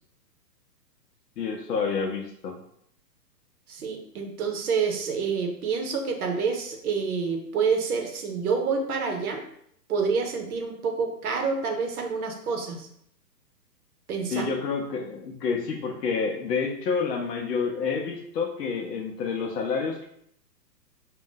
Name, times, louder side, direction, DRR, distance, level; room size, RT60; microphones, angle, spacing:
voice 1, 1.4-2.6 14.3-20.1, left 5 dB, 75° left, 2 dB, 0.6 m, -29 dB
voice 2, 3.7-9.4 9.9-12.9 14.1-14.5, right 5 dB, 60° right, 3 dB, 0.7 m, -28 dB
2.5 x 2.2 x 3.5 m, 0.70 s
hypercardioid pair, 165°, 50 cm